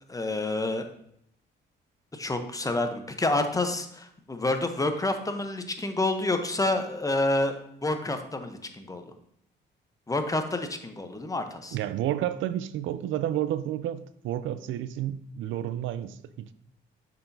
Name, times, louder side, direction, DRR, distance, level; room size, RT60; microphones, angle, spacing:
voice 1, 0.1-0.9 2.1-9.1 10.1-11.8, left 2 dB, 15° left, 0.8 m, -28 dB
voice 2, 11.7-16.5, right 12 dB, 80° right, 0.4 m, -31 dB
6.8 x 5.8 x 2.7 m
cardioid pair, 90°, 20 cm